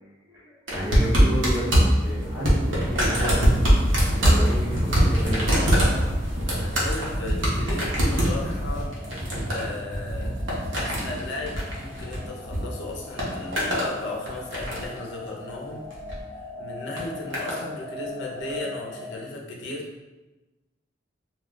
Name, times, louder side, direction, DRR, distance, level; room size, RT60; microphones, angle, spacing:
voice 1, 0.2-5.7, right 1 dB, 15° right, -6 dB, 0.6 m, -32 dB
sound 1, 0.7-12.6 12.9-13.9 14.3-15.0 15.9-16.2 17.0-17.6 18.5-18.6, equal, 80° right, 0.8 m, -23 dB
voice 2, 6.5-8.9 9.5-10.4 10.7-15.8 16.6-19.9, left 2 dB, 60° left, -2 dB, 0.5 m, -35 dB
sound 2, 8.3-19.2, left 2 dB, 30° right, 1.0 m, -41 dB
2.3 x 2.2 x 3.5 m, 1.1 s
head